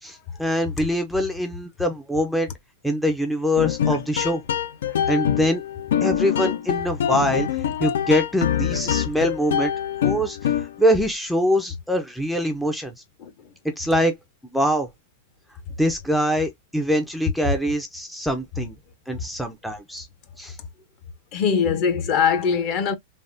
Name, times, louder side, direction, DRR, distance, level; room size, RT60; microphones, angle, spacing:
voice 1, 0.0-2.5 2.8-4.4 5.1-5.6 6.0-9.7 10.0-12.9 13.8-14.1 14.5-14.9 15.8-18.8 19.1-20.1 20.4-20.6, equal, ahead, 0.4 m, -24 dB
sound 1, 3.6-10.9, left 9 dB, 80° left, 0.4 m, -24 dB
voice 2, 13.2-13.5 17.4-17.5 19.1-19.2 21.3-23.0, left 6 dB, 35° left, 0.6 m, -22 dB
3.3 x 2.1 x 2.5 m
supercardioid pair, 155°, 0 cm